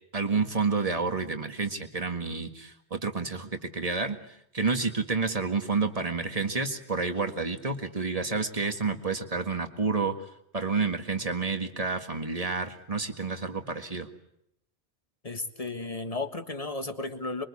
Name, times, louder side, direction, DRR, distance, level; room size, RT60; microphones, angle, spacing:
voice 1, 0.1-4.2 4.5-10.1 10.5-14.1, right 4 dB, 35° right, 7 dB, 1.9 m, -29 dB
voice 2, 15.2-17.5, left 3 dB, 35° left, 8 dB, 1.7 m, -34 dB
26.5 x 23.0 x 8.5 m, 0.79 s
omnidirectional pair, 1.1 m